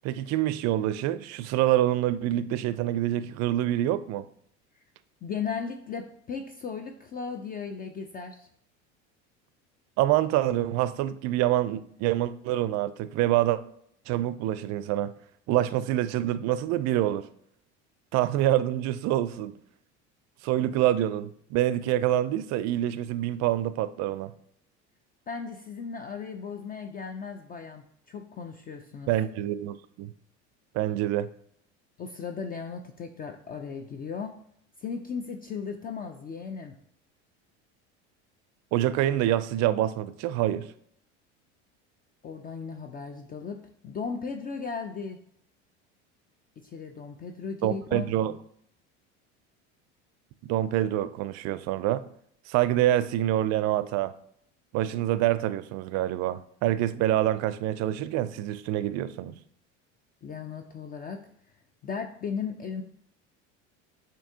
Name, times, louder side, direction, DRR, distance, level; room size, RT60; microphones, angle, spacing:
voice 1, 0.0-4.3 10.0-13.6 14.1-15.1 15.5-17.3 18.1-19.6 20.4-24.3 29.1-30.1 30.7-31.3 38.7-40.7 47.6-48.3 50.5-52.1 52.5-54.1 54.7-59.3, right 13 dB, 50° right, 0.4 m, -26 dB
voice 2, 5.2-8.5 25.3-29.1 32.0-34.3 34.8-36.7 42.2-45.2 46.6-48.0 60.2-61.2 61.8-62.8, left 6 dB, 25° left, 0.4 m, -36 dB
7.0 x 2.7 x 2.7 m
hypercardioid pair, 90°, 35 cm